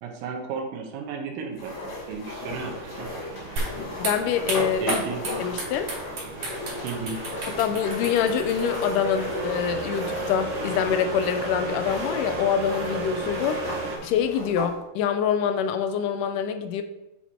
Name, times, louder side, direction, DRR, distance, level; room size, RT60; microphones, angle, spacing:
voice 1, 0.0-3.1 4.8-5.2 6.8-7.2, right 5 dB, 85° right, 2 dB, 2.6 m, -34 dB
sound 1, 1.6-14.7, left 2 dB, 50° left, 2.3 m, -35 dB
sound 2, 2.4-14.0, right 2 dB, 70° right, 2.8 m, -35 dB
sound 3, 3.6-10.1, right 2 dB, 40° right, 3.6 m, -35 dB
voice 2, 4.0-5.0 5.4-5.9 7.6-13.6 14.0-16.8, left 8 dB, 80° left, 8 dB, 2.0 m, -25 dB
8.1 x 4.4 x 4.4 m, 0.95 s
omnidirectional pair, 3.9 m